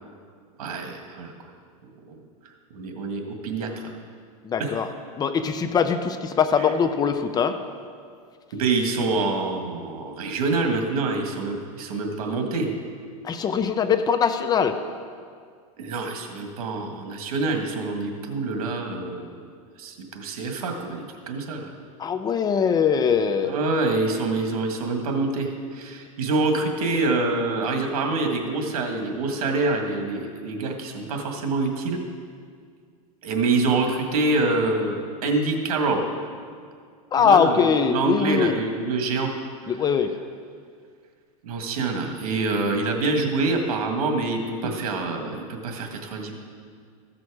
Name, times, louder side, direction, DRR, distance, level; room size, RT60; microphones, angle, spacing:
voice 1, 0.6-1.3 1.8-2.2 2.7-3.9 4.6-4.8 6.6-6.7 8.5-12.7 15.8-19.4 19.8-21.7 23.4-32.0 33.2-36.0 37.2-39.3 41.4-46.3, right 3 dB, 75° right, 3 dB, 1.8 m, -26 dB
voice 2, 4.4-4.9 5.2-7.6 13.2-14.8 22.0-23.6 37.1-38.6 39.7-40.1, left 6 dB, 20° left, 9 dB, 0.5 m, -22 dB
14.5 x 6.2 x 4.8 m, 2.1 s
supercardioid pair, 130°, 19 cm